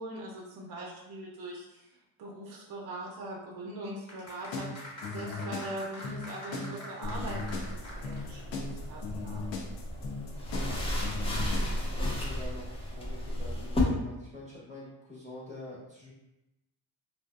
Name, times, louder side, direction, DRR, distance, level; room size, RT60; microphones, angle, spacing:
voice 1, 0.0-9.5, right 1 dB, 50° right, -2 dB, 0.6 m, -42 dB
sound 1, 4.0-8.6 8.8-8.9, left 1 dB, 35° left, 1.0 m, -45 dB
sound 2, 4.3-12.1, left 4 dB, 65° left, 0.6 m, -38 dB
sound 3, 7.0-13.8, equal, 15° left, 0.4 m, -34 dB
voice 2, 11.1-16.1, left 1 dB, 15° right, -7 dB, 0.9 m, -46 dB
2.6 x 2.1 x 2.3 m, 0.93 s
cardioid pair, 95°, 48 cm